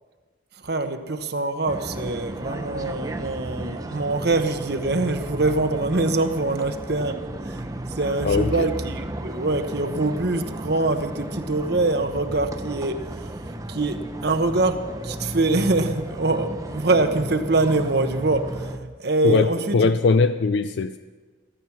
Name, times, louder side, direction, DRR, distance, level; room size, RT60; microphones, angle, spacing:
voice 1, 0.6-13.3 13.7-19.9, right 2 dB, 55° right, 7 dB, 1.0 m, -24 dB
sound 1, 1.7-18.8, right 1 dB, 15° right, 0.7 m, -34 dB
voice 2, 8.2-8.7 19.2-21.0, left 4 dB, 60° left, 11 dB, 0.4 m, -20 dB
15.0 x 14.0 x 5.9 m, 1.4 s
head